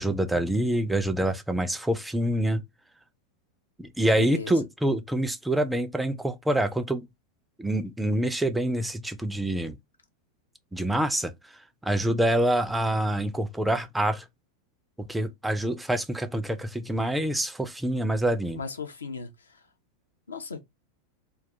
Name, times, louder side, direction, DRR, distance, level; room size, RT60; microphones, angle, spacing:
voice 1, 0.0-2.6 3.8-7.1 7.6-9.8 10.7-14.2 15.0-18.6, right 1 dB, 5° right, 0.3 m, -26 dB
voice 2, 4.1-4.6 18.5-19.6 20.3-20.6, left 4 dB, 75° left, 0.4 m, -36 dB
2.3 x 2.2 x 2.6 m
figure-of-eight pair, 90°, 0 cm